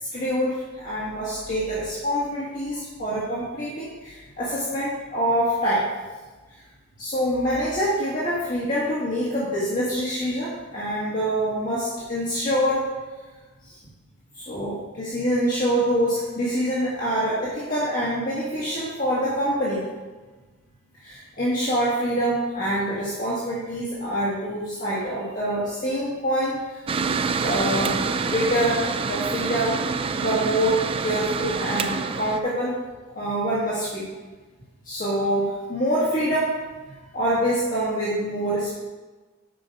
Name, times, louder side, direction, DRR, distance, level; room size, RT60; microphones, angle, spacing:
voice 1, 0.1-5.8 7.0-12.8 13.6-13.7 14.4-19.8 21.0-26.8 27.4-27.9 28.2-29.8 30.1-32.7 33.2-34.0 34.8-36.5 37.1-38.7, equal, 40° left, -8 dB, 1.8 m, -25 dB
Mechanical fan, 26.9-32.4, right 5 dB, 25° right, 0.3 m, -26 dB
7.8 x 5.6 x 4.8 m, 1.3 s
head